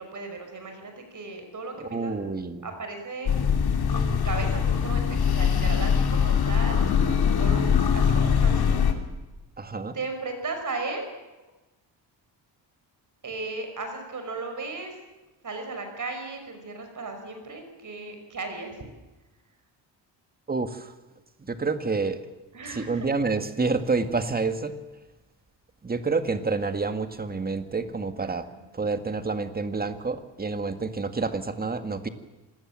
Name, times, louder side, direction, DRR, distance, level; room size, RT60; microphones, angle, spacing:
voice 1, 0.0-2.2 2.6-3.3 3.8-7.6 7.9-8.8 9.9-11.1 13.2-15.0 15.4-18.9 22.5-23.1 28.2-28.7, right 3 dB, 45° right, 5 dB, 5.9 m, -36 dB
voice 2, 1.8-2.7 9.6-10.0 20.5-20.9 21.4-22.3 22.7-24.8 25.8-28.5 28.7-32.1, right 4 dB, 20° right, 8 dB, 1.9 m, -28 dB
sound 1, 3.3-8.9, left 7 dB, 55° left, 3.0 m, -22 dB
26.0 x 20.0 x 7.6 m, 1.1 s
cardioid pair, 115°, 44 cm